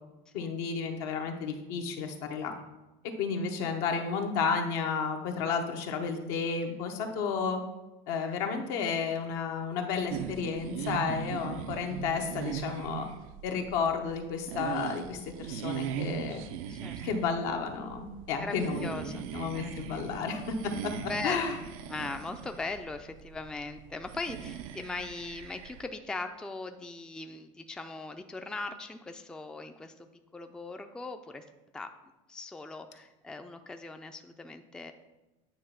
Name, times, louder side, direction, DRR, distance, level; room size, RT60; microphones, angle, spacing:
voice 1, 0.3-2.5 3.2-7.6 8.1-13.1 13.4-16.4 17.0-20.9 21.2-21.6, left 5 dB, 75° left, 4 dB, 1.0 m, -32 dB
sound 1, 10.1-25.9, right 9 dB, 90° right, 0.6 m, -40 dB
voice 2, 16.6-17.0 18.3-20.1 21.0-21.4 21.9-29.9 30.3-31.4 31.7-31.9 32.3-34.9, left 3 dB, 5° left, 7 dB, 0.3 m, -39 dB
8.7 x 3.0 x 5.7 m, 1.0 s
supercardioid pair, 120°, 17 cm